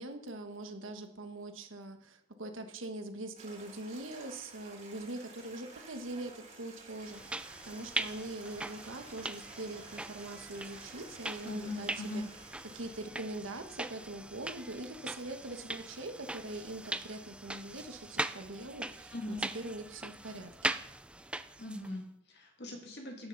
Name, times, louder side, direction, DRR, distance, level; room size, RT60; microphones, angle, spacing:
voice 1, 0.0-12.2 12.7-20.7, right 2 dB, 85° right, 6 dB, 1.4 m, -43 dB
Stream, 3.3-13.1, right 3 dB, 35° right, 3.2 m, -53 dB
sound 1, 7.0-22.0, right 2 dB, 5° right, 0.3 m, -41 dB
voice 2, 11.4-12.3 19.1-19.5 21.6-23.3, left 1 dB, 55° left, 1 dB, 2.3 m, -40 dB
12.5 x 10.0 x 4.0 m, 0.77 s
head